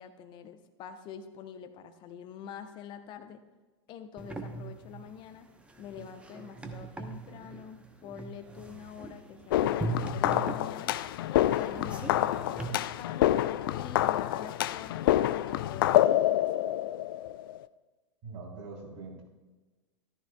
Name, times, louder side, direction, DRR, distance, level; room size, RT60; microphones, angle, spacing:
voice 1, 0.0-3.4 3.9-5.5 5.8-13.3 13.7-16.5, left 8 dB, 30° left, 8 dB, 0.9 m, -46 dB
sound 1, 4.2-12.7, right 3 dB, 5° right, 1.0 m, -40 dB
sound 2, 9.5-17.6, left 13 dB, 50° left, 0.4 m, -27 dB
voice 2, 18.2-19.2, right 3 dB, 40° right, -2 dB, 3.7 m, -43 dB
14.0 x 13.5 x 2.3 m, 1.2 s
figure-of-eight pair, 95°, 15 cm